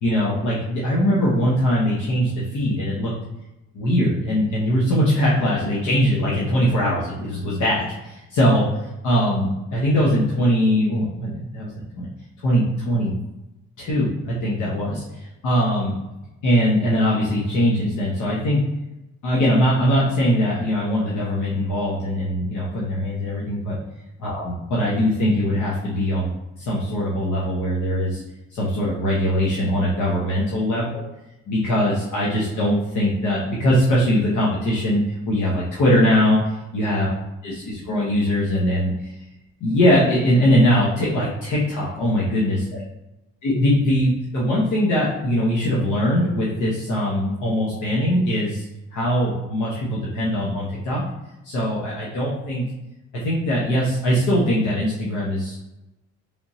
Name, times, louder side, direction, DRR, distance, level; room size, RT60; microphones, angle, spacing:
voice 1, 0.0-3.1 3.7-8.6 9.0-11.7 12.0-12.1 12.4-13.1 13.8-15.0 15.4-15.9 16.4-18.6 19.2-23.8 24.2-26.3 26.6-28.2 28.5-31.0 31.5-36.4 36.7-37.1 37.4-39.1 39.6-42.8 43.4-48.7 48.9-51.0 51.4-52.7 53.1-55.6, equal, 75° left, -6 dB, 1.0 m, -21 dB
3.4 x 3.0 x 2.6 m, 0.95 s
cardioid pair, 90°, 30 cm